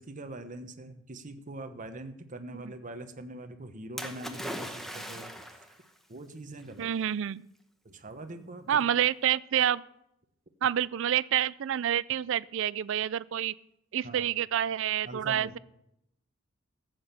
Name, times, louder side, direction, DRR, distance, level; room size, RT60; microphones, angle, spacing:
voice 1, 0.0-5.4 6.1-6.9 7.8-8.8 14.0-14.3 15.0-15.6, right 2 dB, 40° right, 8 dB, 1.1 m, -43 dB
Splash splatter, 4.0-5.8 6.7-6.8, equal, ahead, 1.0 m, -39 dB
voice 2, 6.8-7.5 8.7-9.8 10.6-13.5 13.9-15.6, right 10 dB, 65° right, 20 dB, 0.4 m, -28 dB
14.5 x 7.9 x 6.7 m, 0.82 s
head